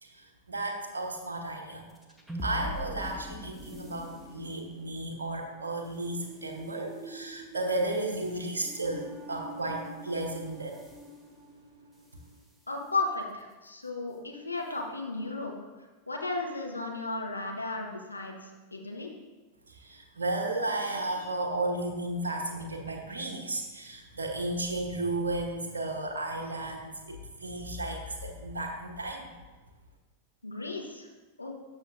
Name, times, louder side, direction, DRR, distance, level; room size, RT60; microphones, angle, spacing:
voice 1, 0.0-1.9 2.4-10.8 19.7-29.3, right 2 dB, 75° right, 2 dB, 1.0 m, -34 dB
sound 1, 1.9-12.4, equal, 5° right, 1.1 m, -44 dB
voice 2, 12.7-15.5 16.1-19.1 30.4-31.1 31.4-31.5, left 3 dB, 85° left, 1 dB, 1.1 m, -34 dB
12.5 x 6.5 x 2.6 m, 1.2 s
figure-of-eight pair, 90°, 0 cm